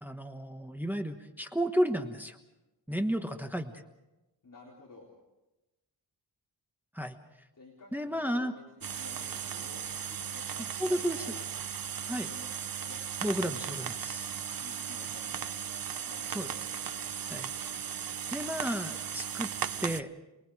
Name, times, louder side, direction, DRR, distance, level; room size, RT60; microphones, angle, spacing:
voice 1, 0.0-2.4 2.9-3.7 6.9-7.2 7.9-8.5 10.8-11.3 12.1-12.3 13.2-14.3 16.3-16.5 17.3-17.5 18.0-19.5 19.8-20.1, equal, 5° right, 5 dB, 1.3 m, -32 dB
voice 2, 4.4-5.1 7.6-11.4 12.1-12.5 12.8-13.4 14.5-15.5 16.0-16.6, left 2 dB, 45° left, -3 dB, 4.0 m, -52 dB
sound 1, 8.8-20.0, right 8 dB, 50° right, 0.7 m, -37 dB
28.5 x 21.5 x 4.9 m, 0.99 s
wide cardioid pair, 140°, 45 cm